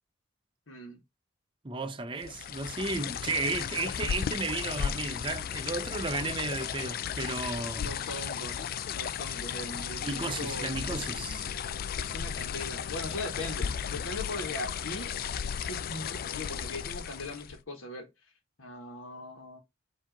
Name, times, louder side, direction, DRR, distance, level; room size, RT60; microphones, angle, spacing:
voice 1, 0.7-1.0 7.8-8.7 8.9-10.7 12.0-15.1 15.6-18.1 18.6-19.6, left 2 dB, 85° left, 1.3 m, -40 dB
voice 2, 1.6-8.0 10.0-11.5, right 3 dB, 25° right, 0.6 m, -34 dB
sound 1, 2.2-17.6, left 8 dB, 45° left, 0.3 m, -35 dB
4.9 x 2.8 x 3.9 m
head